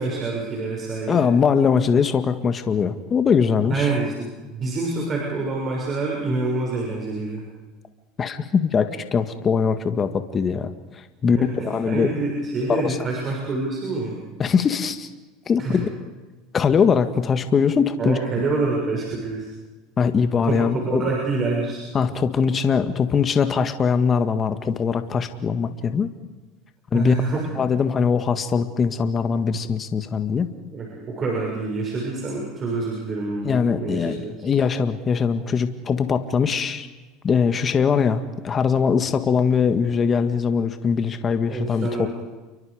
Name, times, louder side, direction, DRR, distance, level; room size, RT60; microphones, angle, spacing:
voice 1, 0.0-1.2 3.7-7.4 11.2-14.2 15.6-15.9 18.0-19.5 20.4-20.6 20.9-21.8 26.9-27.6 30.7-34.5 41.5-42.1, right 3 dB, 35° right, -2 dB, 6.6 m, -26 dB
voice 2, 1.1-3.9 8.2-11.4 11.6-12.1 12.7-13.0 14.4-15.1 15.5-15.9 16.5-18.2 20.0-21.1 21.9-26.1 26.9-27.1 27.6-30.5 33.4-36.9 37.2-42.1, left 6 dB, 30° left, 9 dB, 1.7 m, -21 dB
29.0 x 24.0 x 5.1 m, 1.2 s
supercardioid pair, 110°, 0 cm